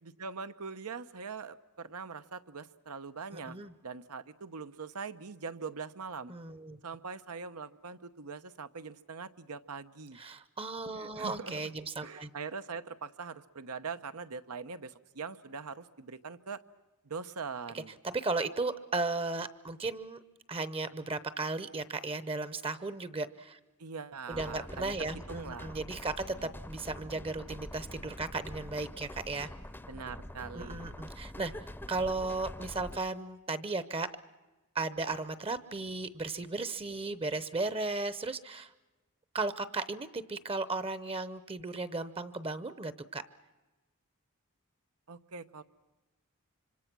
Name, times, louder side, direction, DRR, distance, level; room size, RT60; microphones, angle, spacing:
voice 1, 0.0-3.6 3.8-6.3 6.8-10.2 11.0-11.8 12.0-16.6 17.0-18.0 23.8-25.8 26.3-26.5 29.9-30.9 45.1-45.6, right 5 dB, 90° right, 10 dB, 1.0 m, -42 dB
voice 2, 3.3-3.7 6.3-6.8 10.2-12.3 18.0-20.2 20.5-23.6 24.3-29.5 30.5-34.1 34.7-38.7 39.3-43.2, right 3 dB, 25° right, 14 dB, 0.8 m, -35 dB
sound 1, 24.3-33.0, left 1 dB, 10° left, 0.7 m, -45 dB
26.0 x 25.0 x 6.1 m, 1.1 s
head